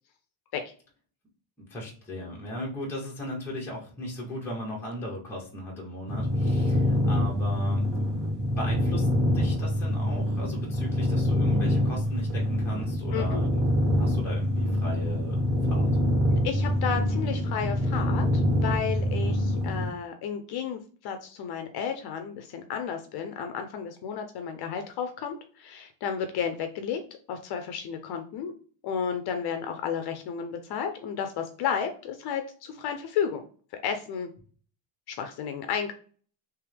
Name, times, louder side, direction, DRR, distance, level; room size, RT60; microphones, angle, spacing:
voice 1, 1.7-9.1 9.3-13.6 13.9-15.9, left 1 dB, 5° left, -4 dB, 0.9 m, -37 dB
sound 1, 6.1-19.9, left 1 dB, 55° right, 1.6 m, -25 dB
voice 2, 13.1-13.4 16.3-27.0 27.3-28.5 28.8-33.4 33.8-34.3 35.1-35.9, left 7 dB, 55° left, 6 dB, 0.5 m, -32 dB
3.4 x 3.0 x 3.3 m, 0.43 s
cardioid pair, 180°, 49 cm